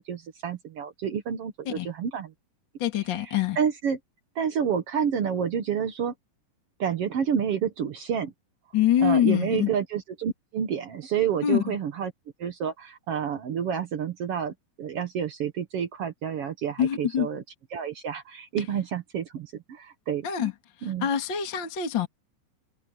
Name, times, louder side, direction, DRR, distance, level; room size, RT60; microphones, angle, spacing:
voice 1, 0.0-2.3 3.2-4.0 4.3-6.1 6.8-8.3 9.0-12.1 12.4-17.4 17.7-20.5 20.8-21.1, right 8 dB, 60° right, 1.6 m, -29 dB
voice 2, 2.8-3.6 8.7-9.7 11.4-11.8 16.8-17.3 20.2-20.5 20.8-22.1, left 10 dB, 35° left, 2.5 m, -25 dB
omnidirectional pair, 4.1 m